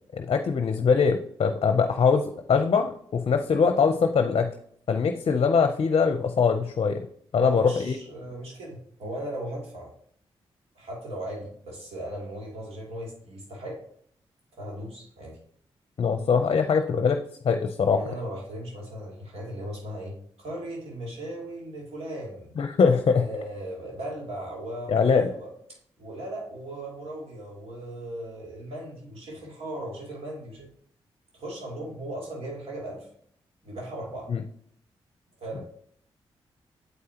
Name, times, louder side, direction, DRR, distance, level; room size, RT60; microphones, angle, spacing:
voice 1, 0.1-4.5 4.9-7.1 7.3-8.0 16.0-17.2 17.4-18.0 22.6-23.3 24.9-25.3 34.3-34.4, left 5 dB, 55° left, 7 dB, 0.6 m, -22 dB
voice 2, 7.4-9.9 10.7-13.8 14.6-15.4 17.9-22.6 23.1-25.5 26.0-30.7 31.3-33.1 33.6-34.3 35.4-35.6, right 1 dB, 65° right, -3 dB, 2.8 m, -37 dB
8.1 x 4.7 x 2.9 m, 0.65 s
supercardioid pair, 45°, 11 cm